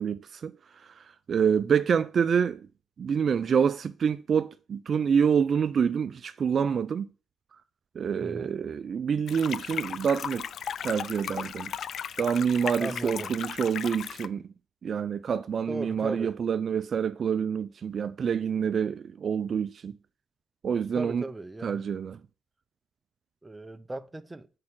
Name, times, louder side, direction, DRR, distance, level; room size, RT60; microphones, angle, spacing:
voice 1, 0.0-2.7 3.0-7.1 8.0-10.5 10.8-11.7 12.2-14.4 14.8-20.0 20.6-21.2 21.6-22.2, right 7 dB, 50° right, 0.3 m, -27 dB
voice 2, 8.2-8.6 12.8-13.3 15.7-16.3 20.9-21.8 23.4-24.5, right 2 dB, 15° right, 0.6 m, -37 dB
sound 1, 9.3-14.3, left 8 dB, 60° left, 0.3 m, -36 dB
6.5 x 4.8 x 6.0 m
cardioid pair, 90°, 0 cm